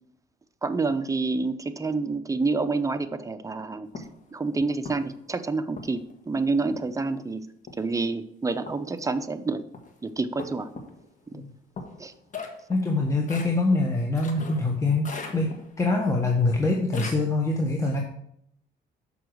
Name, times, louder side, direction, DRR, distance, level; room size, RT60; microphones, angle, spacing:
voice 1, 0.6-7.4 7.8-9.6 10.0-10.7 11.3-11.4 12.0-12.1, right 3 dB, 15° right, 9 dB, 0.6 m, -28 dB
sound 1, 3.9-4.2 4.8-5.2 5.8-6.1 6.7-7.0 7.7-8.1 8.7-9.0 9.7-9.9 10.4-11.1 11.8-14.7 15.0-15.8 16.4-17.1, left 3 dB, 40° left, 1.4 m, -39 dB
voice 2, 12.7-15.0 15.3-18.0, left 2 dB, 15° left, 0 dB, 1.2 m, -24 dB
6.7 x 5.5 x 6.3 m, 0.74 s
cardioid pair, 90°, 20 cm